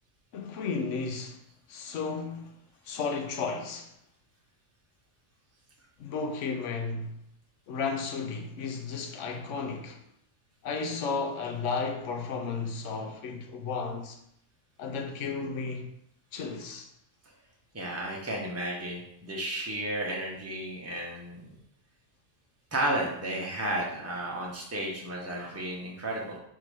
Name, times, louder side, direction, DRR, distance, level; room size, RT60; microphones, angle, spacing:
voice 1, 0.3-1.4 1.7-2.6 2.9-3.9 6.0-7.2 7.7-10.0 10.6-14.2 14.8-15.9 16.3-16.9, left 4 dB, 80° left, 1.0 m, -33 dB
voice 2, 17.7-21.6 22.7-26.4, right 1 dB, 15° right, 0.7 m, -33 dB
3.7 x 2.8 x 4.7 m
omnidirectional pair, 1.3 m